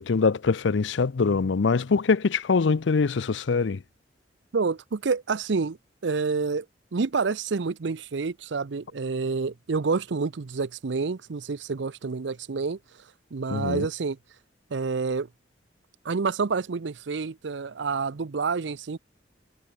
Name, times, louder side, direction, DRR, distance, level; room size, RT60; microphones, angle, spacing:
voice 1, 0.0-3.8 13.5-13.9, left 4 dB, 80° left, 0.5 m, -23 dB
voice 2, 4.5-5.8 6.0-6.7 6.9-12.8 13.3-14.2 14.7-15.3 16.0-19.0, right 4 dB, 80° right, 0.6 m, -28 dB
head